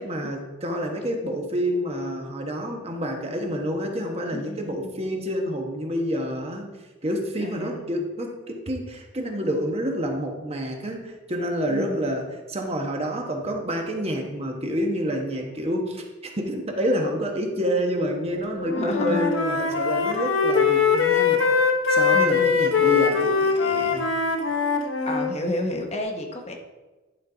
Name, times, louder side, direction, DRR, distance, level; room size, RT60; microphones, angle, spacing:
voice 1, 0.0-6.7 7.0-16.0 16.4-21.4 21.9-24.1, equal, 30° right, 2 dB, 1.1 m, -28 dB
voice 2, 4.3-5.1 7.4-8.0 11.7-11.9 18.8-19.3 22.1-22.7 25.1-26.6, left 1 dB, 35° left, 3 dB, 0.9 m, -31 dB
Wind instrument woodwind instrument, 18.6-25.3, left 5 dB, 90° left, 1.0 m, -22 dB
11.0 x 5.3 x 3.9 m, 1.2 s
head